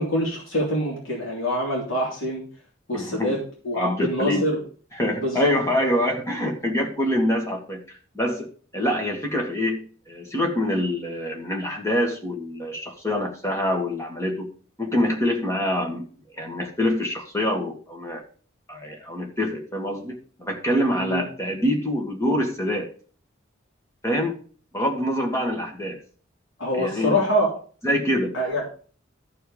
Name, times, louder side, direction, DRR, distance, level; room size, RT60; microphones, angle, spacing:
voice 1, 0.0-2.4 2.9-3.4 3.6-4.6 5.2-5.5 21.0-21.2 26.6-27.5 28.3-28.6, equal, 85° left, -3 dB, 3.3 m, -25 dB
voice 2, 2.9-3.4 3.7-4.5 5.0-14.5 14.8-16.1 16.3-18.2 18.7-22.9 24.0-24.4 24.7-26.0 26.7-27.2 27.8-28.4, left 1 dB, 15° left, 2 dB, 1.8 m, -25 dB
13.5 x 4.6 x 5.0 m, 0.41 s
head